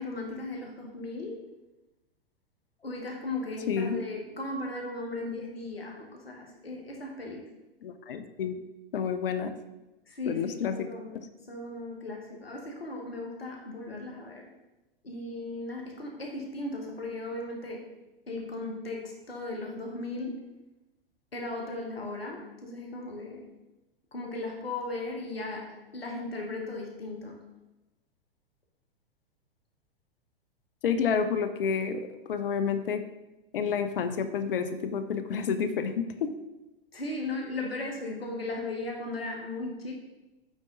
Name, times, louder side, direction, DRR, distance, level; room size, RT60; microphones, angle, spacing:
voice 1, 0.0-1.4 2.8-7.5 10.1-11.1 11.4-14.5 15.0-17.9 18.3-20.4 21.3-23.4 24.1-27.4 36.9-39.9, left 2 dB, 90° left, 1 dB, 1.3 m, -37 dB
voice 2, 3.7-4.0 7.8-8.6 8.9-9.5 10.3-10.9 30.8-33.0 33.5-35.9 36.2-36.3, left 6 dB, 65° left, 10 dB, 0.7 m, -29 dB
9.1 x 3.7 x 3.9 m, 1.0 s
figure-of-eight pair, 105°, 29 cm